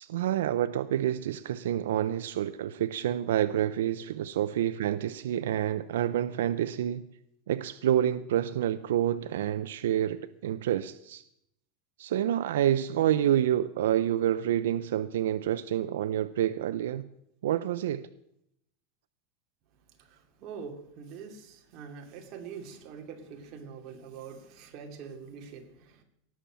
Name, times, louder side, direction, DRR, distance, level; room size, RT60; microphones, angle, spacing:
voice 1, 0.0-7.0 7.5-11.2 12.0-17.1 17.4-18.1, right 11 dB, 90° right, 13 dB, 0.6 m, -28 dB
voice 2, 19.7-26.0, right 6 dB, 40° right, 2 dB, 2.7 m, -44 dB
18.5 x 7.1 x 7.5 m, 0.76 s
supercardioid pair, 155°, 0 cm